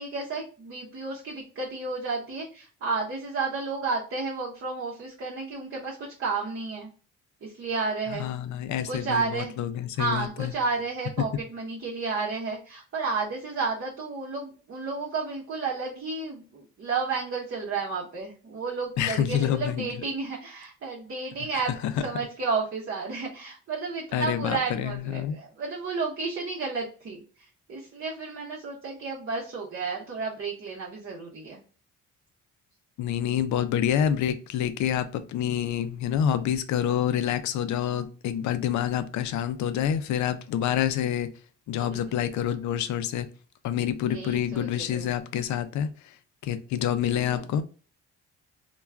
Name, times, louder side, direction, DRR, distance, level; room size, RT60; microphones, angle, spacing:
voice 1, 0.0-6.9 7.4-8.3 8.9-9.5 9.9-31.6 41.7-42.2 44.0-45.1 47.0-47.5, right 4 dB, 45° right, -4 dB, 0.8 m, -32 dB
voice 2, 8.1-10.5 19.0-20.0 21.5-22.1 24.1-25.4 33.0-41.3 41.7-43.3 43.6-45.9 46.4-47.6, left 10 dB, 70° left, 11 dB, 0.4 m, -27 dB
2.3 x 2.3 x 3.2 m, 0.38 s
cardioid pair, 90°, 30 cm